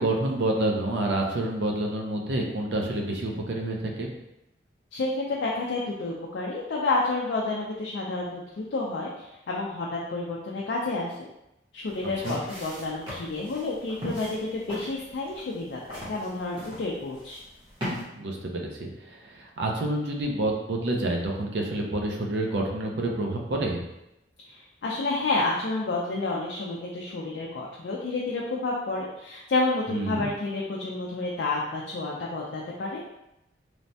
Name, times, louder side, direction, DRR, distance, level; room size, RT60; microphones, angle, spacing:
voice 1, 0.0-4.1 12.2-12.4 18.2-23.8 29.9-30.3, right 2 dB, 75° right, 1 dB, 0.5 m, -28 dB
voice 2, 4.9-11.3 11.7-17.4 24.5-33.0, left 3 dB, 75° left, -3 dB, 0.4 m, -30 dB
sound 1, 11.9-18.0, equal, 25° right, 0.8 m, -39 dB
3.1 x 2.1 x 2.6 m, 0.87 s
head